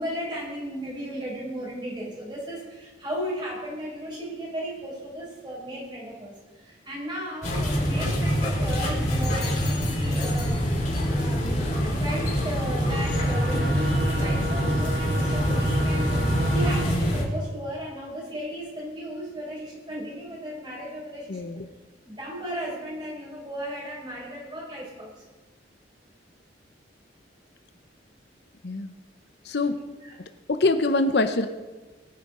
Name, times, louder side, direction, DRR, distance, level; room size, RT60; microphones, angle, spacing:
voice 1, 0.0-10.6 11.1-21.6 22.0-25.2 30.0-30.1, equal, 25° right, -4 dB, 5.0 m, -35 dB
sound 1, 7.4-17.2, equal, 45° left, 3.9 m, -25 dB
sound 2, 12.9-16.8, right 1 dB, 75° right, 3.4 m, -33 dB
voice 2, 21.3-21.7 28.6-28.9 29.4-29.8 30.5-31.5, left 2 dB, 60° left, 9 dB, 0.7 m, -24 dB
21.5 x 9.5 x 3.8 m, 1.2 s
head